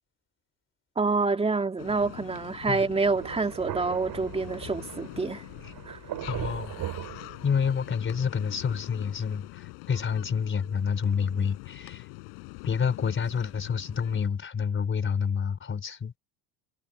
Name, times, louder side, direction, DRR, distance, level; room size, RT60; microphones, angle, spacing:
voice 1, 1.0-5.4 5.9-6.0, right 3 dB, 15° right, 2.7 m, -27 dB
sound 1, 1.8-14.3, left 33 dB, 80° left, 7.4 m, -44 dB
Thunder, 3.2-8.0, right 12 dB, 50° right, 7.6 m, -39 dB
voice 2, 6.3-6.7 7.4-12.1 12.6-16.1, left 6 dB, 25° left, 4.2 m, -28 dB
cardioid pair, 140°, 44 cm